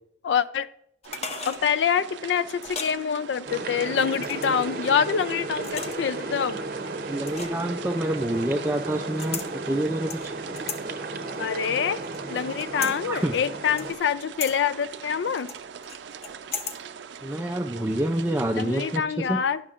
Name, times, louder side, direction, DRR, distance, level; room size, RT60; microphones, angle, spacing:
voice 1, 0.2-0.7 1.5-6.6 11.4-12.0 12.3-15.5 18.5-19.6, left 7 dB, 80° left, 15 dB, 0.4 m, -26 dB
sound 1, 1.0-1.6 2.6-3.0 4.2-4.6 5.6-6.2 7.3-7.7 9.2-9.5 10.1-10.8 11.3-12.2 12.6-13.0 13.8-14.1 14.4-14.5 15.5-16.8 17.1-17.2, left 5 dB, 35° left, 0.6 m, -35 dB
sound 2, 1.0-19.0, right 7 dB, 85° right, 0.4 m, -42 dB
sound 3, 3.5-13.9, right 2 dB, 55° right, 0.7 m, -34 dB
voice 2, 7.1-10.3 12.7-13.4 17.2-19.4, right 1 dB, 15° right, 2 dB, 0.3 m, -27 dB
9.8 x 6.5 x 2.4 m, 0.75 s
head